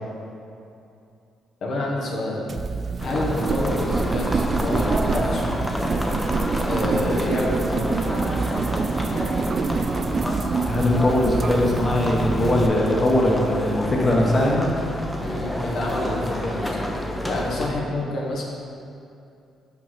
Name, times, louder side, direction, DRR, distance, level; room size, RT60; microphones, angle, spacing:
voice 1, 1.6-2.4 3.0-5.4 6.7-8.0 15.2-16.9 17.3-18.4, left 1 dB, 65° left, -3 dB, 1.3 m, -28 dB
sound 1, 2.5-12.7, right 4 dB, 45° right, 0.3 m, -26 dB
sound 2, 3.0-17.7, left 1 dB, 5° left, 0.8 m, -29 dB
voice 2, 10.7-14.7, left 1 dB, 25° left, -3 dB, 1.1 m, -20 dB
5.6 x 4.8 x 5.8 m, 2.6 s
cardioid pair, 90°, 0 cm